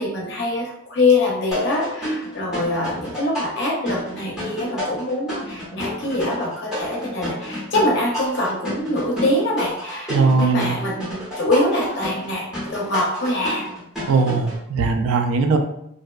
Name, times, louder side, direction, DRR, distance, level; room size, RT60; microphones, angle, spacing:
voice 1, 0.0-13.7, left 2 dB, 50° left, -2 dB, 0.5 m, -24 dB
crazy electro synth, 1.5-14.6, left 1 dB, 5° right, 0.8 m, -30 dB
voice 2, 10.1-10.8 14.1-15.6, right 4 dB, 80° right, 5 dB, 0.3 m, -19 dB
2.6 x 2.1 x 2.2 m, 0.76 s
head